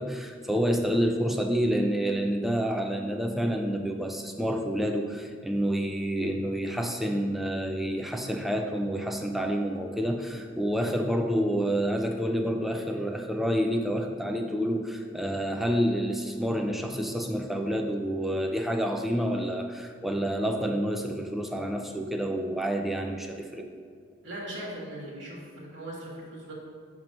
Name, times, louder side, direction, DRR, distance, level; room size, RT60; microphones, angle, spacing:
voice 1, 0.0-23.7, equal, ahead, 3 dB, 0.3 m, -28 dB
voice 2, 24.2-26.5, right 1 dB, 65° right, -6 dB, 1.3 m, -39 dB
6.7 x 3.0 x 5.1 m, 2.2 s
head